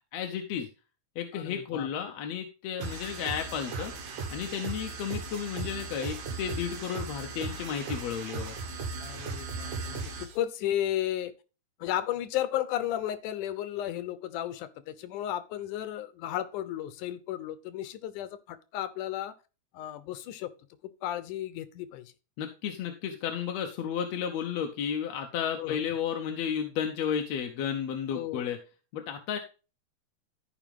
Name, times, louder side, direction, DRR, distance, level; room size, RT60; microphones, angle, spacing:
voice 1, 0.1-0.7 1.2-3.9 4.3-8.6 22.4-28.6 28.9-29.4, left 8 dB, 70° left, 2.1 m, -33 dB
voice 2, 1.3-1.9 9.0-11.3 11.8-19.3 19.7-20.5 21.0-22.1 25.6-25.8 28.1-28.5, left 12 dB, 90° left, 2.3 m, -34 dB
sound 1, 2.8-10.4, right 4 dB, 85° right, 3.0 m, -37 dB
14.0 x 5.1 x 3.6 m
omnidirectional pair, 3.5 m